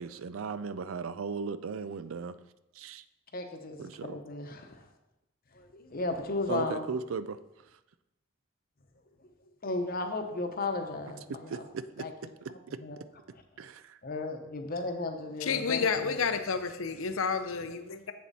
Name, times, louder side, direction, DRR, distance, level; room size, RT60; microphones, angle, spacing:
voice 1, 0.0-2.3 2.8-3.0 3.8-4.2 6.5-7.4 11.5-12.0 12.7-12.8 13.6-13.8, right 5 dB, 80° right, 14 dB, 0.4 m, -36 dB
voice 2, 3.3-4.8 5.5-7.0 9.6-11.7 12.0-12.1 12.8-13.0 14.0-16.2, left 2 dB, 45° left, 5 dB, 0.9 m, -35 dB
voice 3, 15.4-18.1, left 5 dB, 90° left, 9 dB, 0.7 m, -30 dB
7.7 x 7.1 x 4.1 m, 0.94 s
head